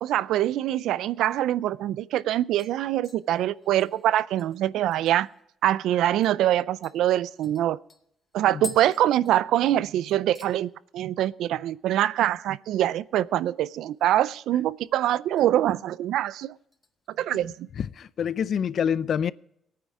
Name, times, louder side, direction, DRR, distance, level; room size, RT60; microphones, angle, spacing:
voice 1, 0.0-5.3 5.6-7.8 8.3-16.5 17.2-17.7, right 12 dB, 85° right, 0.4 m, -24 dB
sound 1, 2.1-2.3 2.6-5.4 5.8-5.9 6.2-6.4 6.8-9.8 10.1-10.6 10.9-11.3 11.6-11.7 13.8-14.4 14.7-15.5 15.9-16.2 16.7-17.6 18.0-18.1, left 3 dB, 30° left, 1.8 m, -47 dB
voice 2, 17.8-19.3, left 8 dB, 60° left, 0.4 m, -26 dB
17.5 x 9.4 x 4.8 m
cardioid pair, 90°, 0 cm